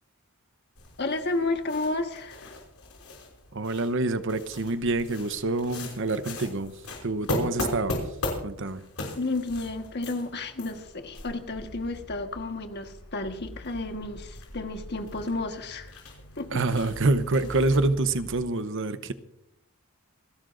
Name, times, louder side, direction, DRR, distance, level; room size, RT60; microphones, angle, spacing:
sound 1, 0.7-18.4, left 1 dB, 80° left, 5.6 m, -39 dB
voice 1, 1.0-2.5 9.1-15.9 16.4-16.6, left 2 dB, 50° left, 6 dB, 1.4 m, -32 dB
voice 2, 3.5-6.7 7.0-8.0 8.4-8.8 16.5-19.1, right 2 dB, 60° right, 12 dB, 0.9 m, -26 dB
27.5 x 12.5 x 2.6 m, 0.80 s
head